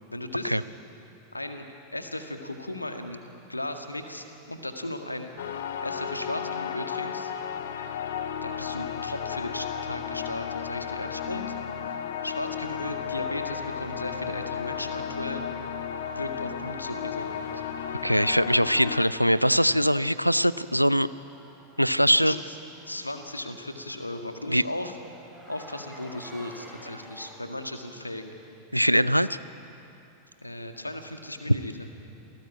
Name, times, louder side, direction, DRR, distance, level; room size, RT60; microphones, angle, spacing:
voice 1, 0.1-0.6 1.3-3.2 3.5-5.3 5.8-7.3 8.4-11.4 12.2-15.4 16.1-17.6 22.1-22.6 22.8-25.0 25.5-28.2 29.2-29.3 30.4-31.9, left 1 dB, 85° left, 5 dB, 1.9 m, -36 dB
sound 1, 5.4-19.0, left 8 dB, 60° left, 1.5 m, -33 dB
sound 2, 13.3-27.4, equal, ahead, 6.7 m, -53 dB
voice 2, 18.0-21.1 21.8-22.4 24.5-24.6 28.7-29.4, equal, 90° right, 16 dB, 0.5 m, -22 dB
27.5 x 18.5 x 8.9 m, 2.8 s
figure-of-eight pair, 90°, 0 cm